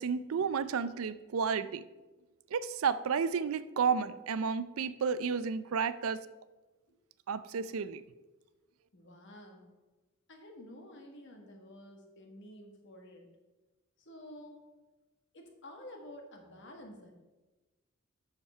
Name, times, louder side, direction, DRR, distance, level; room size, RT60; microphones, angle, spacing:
voice 1, 0.0-1.8 2.5-6.2 7.3-8.0, right 6 dB, 85° right, 15 dB, 0.4 m, -32 dB
voice 2, 8.9-9.7 10.3-13.3 14.0-14.7 15.3-17.1, left 1 dB, 60° left, 2 dB, 1.6 m, -51 dB
7.1 x 6.7 x 5.6 m, 1.1 s
head